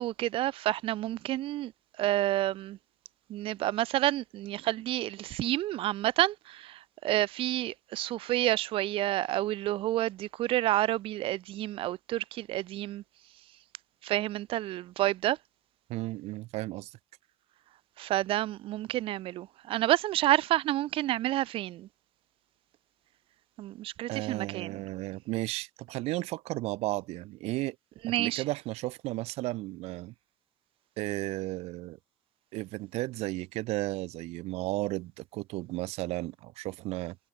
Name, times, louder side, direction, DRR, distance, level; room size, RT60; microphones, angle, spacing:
voice 1, 0.0-1.7 2.0-2.8 3.3-13.0 14.0-15.4 18.0-21.9 23.6-24.8 28.0-28.4, right 15 dB, 55° right, 0.4 m, -29 dB
voice 2, 15.9-17.0 24.1-27.8 28.1-30.1 31.0-32.0 32.5-37.2, right 19 dB, 75° right, 2.0 m, -34 dB
supercardioid pair, 100°, 11 cm